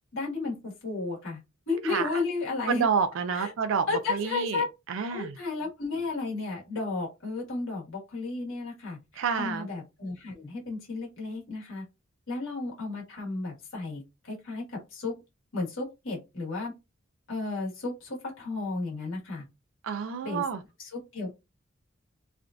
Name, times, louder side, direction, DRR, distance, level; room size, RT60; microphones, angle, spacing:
voice 1, 0.1-1.4 1.7-2.9 3.3-3.5 3.9-4.7 5.1-9.0 9.4-11.8 12.3-15.1 15.5-16.7 17.3-19.4 20.2-20.4 20.8-21.3, left 3 dB, 80° left, 1.5 m, -33 dB
voice 2, 2.7-5.3 9.2-9.7 19.8-20.6, right 6 dB, 70° right, 0.4 m, -29 dB
3.3 x 2.4 x 2.5 m
head